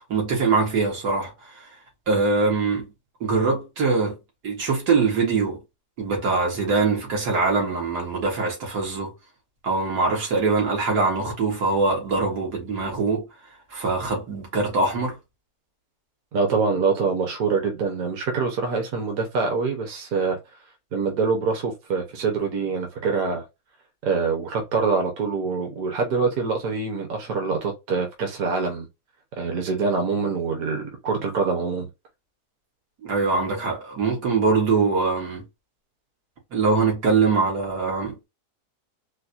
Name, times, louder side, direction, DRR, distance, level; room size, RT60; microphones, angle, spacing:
voice 1, 0.1-1.3 2.1-2.9 3.2-4.1 4.4-5.6 6.0-9.1 9.6-13.2 13.7-15.2 33.0-35.4 36.5-38.1, right 4 dB, 85° right, 2.1 m, -23 dB
voice 2, 16.3-20.4 20.9-23.4 24.0-28.9 29.3-31.9, right 4 dB, 65° right, 1.4 m, -25 dB
4.6 x 2.2 x 2.7 m
omnidirectional pair, 1.7 m